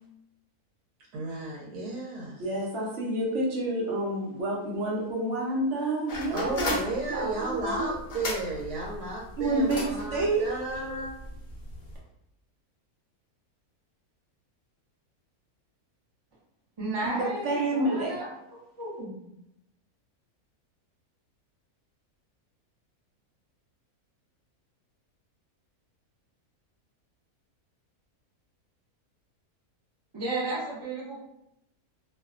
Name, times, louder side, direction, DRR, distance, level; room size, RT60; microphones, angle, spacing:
voice 1, 1.1-2.4 6.3-11.1, right 2 dB, 80° right, -4 dB, 1.1 m, -34 dB
voice 2, 2.4-6.8 7.1-7.9 9.4-11.0 17.0-18.2, right 2 dB, 60° right, -3 dB, 0.9 m, -29 dB
sound 1, 6.1-12.0, left 2 dB, 55° left, 0.5 m, -37 dB
voice 3, 16.8-18.3 18.8-19.2 30.1-31.2, right 2 dB, 30° right, -6 dB, 0.5 m, -33 dB
2.6 x 2.2 x 2.4 m, 0.82 s
omnidirectional pair, 1.6 m